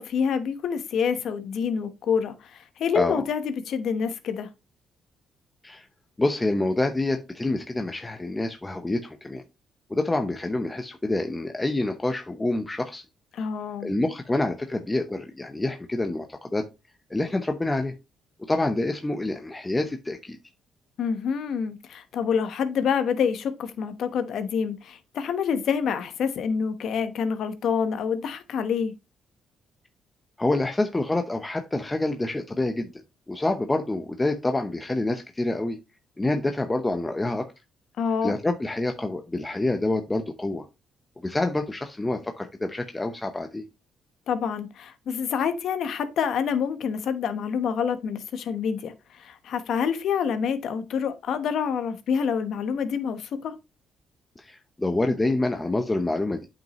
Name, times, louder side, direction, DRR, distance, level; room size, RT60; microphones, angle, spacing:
voice 1, 0.0-4.5 13.3-13.9 21.0-28.9 38.0-38.3 44.3-53.5, left 7 dB, 70° left, 1.0 m, -27 dB
voice 2, 6.2-9.4 9.9-13.0 13.8-16.7 17.1-17.9 18.5-20.4 30.4-32.9 33.3-35.8 36.2-37.5 38.2-40.7 41.2-43.6 54.4-56.5, left 2 dB, 15° left, 0.8 m, -27 dB
8.8 x 5.4 x 3.0 m
cardioid pair, 90°, 0 cm